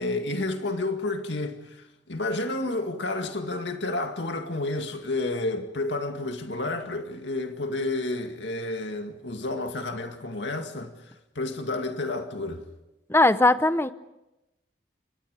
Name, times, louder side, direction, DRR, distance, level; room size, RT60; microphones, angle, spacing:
voice 1, 0.0-10.9 11.4-12.6, left 2 dB, 75° left, 2.1 m, -30 dB
voice 2, 13.1-13.9, left 2 dB, 15° left, 0.8 m, -19 dB
29.5 x 26.0 x 5.1 m
head